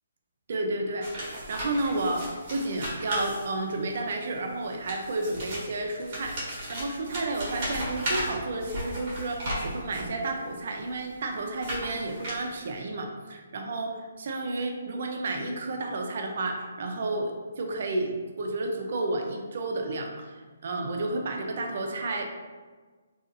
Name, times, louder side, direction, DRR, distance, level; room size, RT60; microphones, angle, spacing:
voice 1, 0.5-22.2, right 2 dB, 55° right, 3 dB, 0.4 m, -31 dB
sound 1, 1.0-3.9 4.6-10.2 10.8-12.7, equal, 35° right, 1.0 m, -35 dB
2.6 x 2.3 x 2.4 m, 1.4 s
hypercardioid pair, 160°, 0 cm